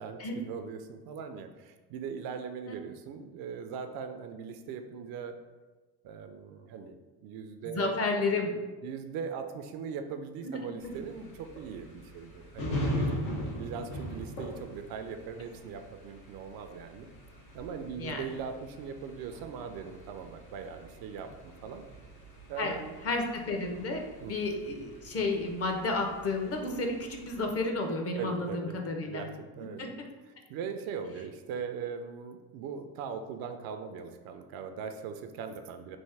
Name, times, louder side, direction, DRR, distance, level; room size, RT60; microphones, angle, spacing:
voice 1, 0.0-5.4 6.0-7.0 7.2-8.0 8.8-17.1 17.5-21.9 22.5-23.0 24.2-24.3 28.2-28.7 29.1-29.9 30.2-36.0, right 6 dB, 60° right, 7 dB, 0.5 m, -40 dB
voice 2, 7.6-8.5 10.4-10.6 18.0-18.3 22.6-22.7 23.0-29.2 29.8-30.1, left 3 dB, 35° left, 3 dB, 0.7 m, -32 dB
sound 1, 10.8-27.5, equal, 85° left, 1.2 m, -41 dB
3.5 x 2.5 x 3.3 m, 1.2 s
supercardioid pair, 80°, 42 cm